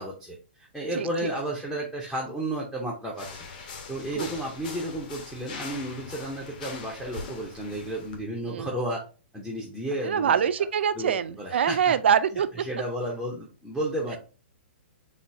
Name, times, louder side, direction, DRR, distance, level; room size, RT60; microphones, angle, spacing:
voice 1, 0.0-9.0 9.3-10.4 11.0-11.1 11.4-11.9 12.3-14.2, right 1 dB, ahead, 0.5 m, -33 dB
voice 2, 1.0-1.3 4.1-4.3 8.5-8.7 10.0-12.5, right 8 dB, 65° right, 0.4 m, -24 dB
sound 1, 3.2-8.2, left 4 dB, 45° left, 0.9 m, -41 dB
4.1 x 2.4 x 4.5 m
hypercardioid pair, 170°, 6 cm